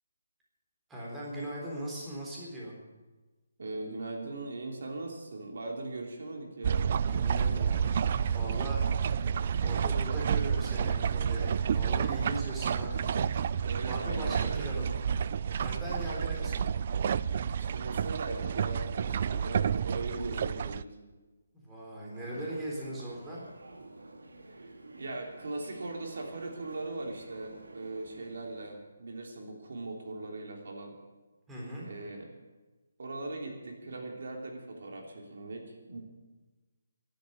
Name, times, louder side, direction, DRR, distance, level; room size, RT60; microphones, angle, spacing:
voice 1, 0.9-2.7 7.1-8.8 9.6-13.2 13.5-14.9 15.6-16.7 21.5-23.5 31.5-31.9, right 1 dB, 10° right, -5 dB, 3.9 m, -39 dB
voice 2, 3.6-6.9 13.5-15.1 17.5-21.0 22.3-22.5 24.5-24.7 25.0-30.9 31.8-32.3 33.0-36.0, right 2 dB, 70° right, 1 dB, 3.3 m, -40 dB
sound 1, 6.6-20.8, right 7 dB, 45° right, 0.4 m, -30 dB
sound 2, 22.1-28.7, right 2 dB, 90° right, 2.2 m, -51 dB
11.5 x 10.5 x 9.3 m, 1.2 s
hypercardioid pair, 160°, 0 cm